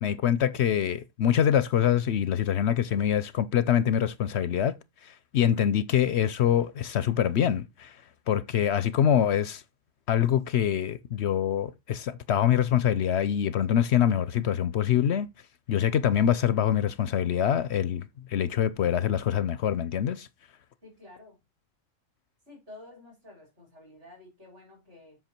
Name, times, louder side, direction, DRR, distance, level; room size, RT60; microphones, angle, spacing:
voice 1, 0.0-4.8 5.0-8.0 8.3-9.6 10.1-15.3 15.7-20.3, left 9 dB, 65° left, 0.8 m, -25 dB
voice 2, 20.8-21.4 22.5-25.2, left 2 dB, 50° right, 4.5 m, -51 dB
8.0 x 5.7 x 4.4 m
omnidirectional pair, 1.4 m